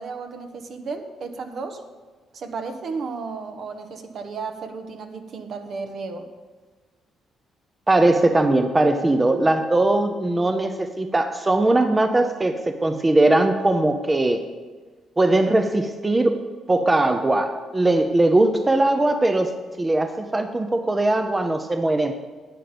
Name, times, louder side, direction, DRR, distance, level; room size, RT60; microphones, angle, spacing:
voice 1, 0.0-1.8 2.3-6.3, right 4 dB, 60° right, 5 dB, 1.3 m, -33 dB
voice 2, 7.9-14.5 15.2-19.5 19.8-22.1, right 2 dB, 20° right, 7 dB, 0.7 m, -20 dB
10.0 x 9.1 x 5.2 m, 1.4 s
cardioid pair, 90°, 0 cm